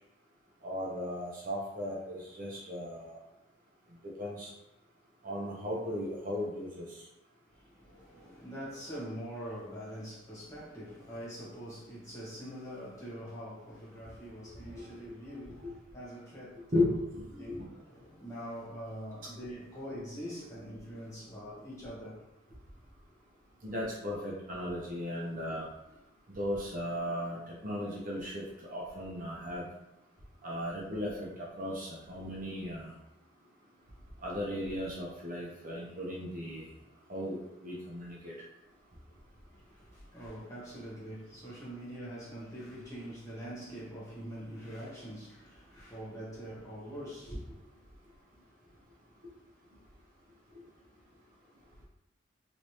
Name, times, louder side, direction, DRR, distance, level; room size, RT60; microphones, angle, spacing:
voice 1, 0.6-3.2 4.0-4.5 5.2-6.9 14.7-14.8 15.6-15.7 16.7-17.7 23.6-25.7 26.3-28.4 28.7-29.7 30.4-32.9 34.2-36.7 37.1-38.3, left 1 dB, 40° right, 0.7 m, -36 dB
voice 2, 7.5-17.0 17.3-22.3 39.5-47.6, equal, 15° left, 1.1 m, -44 dB
3.1 x 3.1 x 2.8 m
head